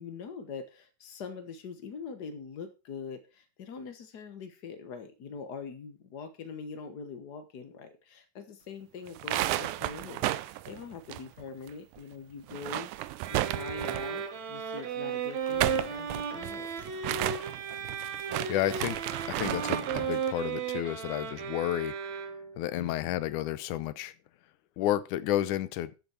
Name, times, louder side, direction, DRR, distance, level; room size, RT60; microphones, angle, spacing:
voice 1, 0.0-16.8 22.8-23.2, left 5 dB, 55° left, 1.1 m, -43 dB
sound 1, 9.1-11.7 12.0-12.1 12.4-14.2 15.3-20.2, right 15 dB, 85° right, 2.2 m, -33 dB
sound 2, 13.2-22.7, right 6 dB, 65° right, 3.0 m, -35 dB
voice 2, 18.5-19.0 19.3-22.0 22.6-24.1 24.8-25.9, left 13 dB, 85° left, 2.3 m, -31 dB
13.0 x 8.2 x 4.4 m
omnidirectional pair, 3.4 m